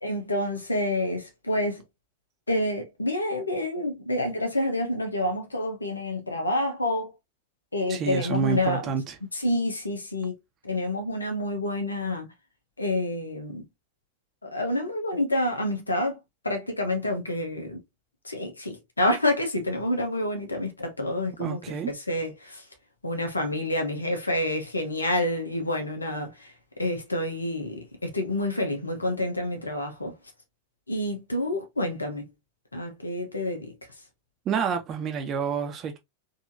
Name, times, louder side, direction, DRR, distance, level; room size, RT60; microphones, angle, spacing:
voice 1, 0.0-1.8 2.5-7.1 7.7-8.8 9.3-10.4 10.6-12.3 12.8-13.6 14.4-16.2 16.4-17.8 18.2-21.6 21.9-22.6 23.0-30.1 30.9-32.2 32.7-33.7, left 1 dB, 80° left, 1.1 m, -28 dB
voice 2, 7.9-9.1 21.4-21.9 34.4-36.0, right 6 dB, 30° right, 1.0 m, -28 dB
4.0 x 2.9 x 2.7 m
figure-of-eight pair, 90°, 0 cm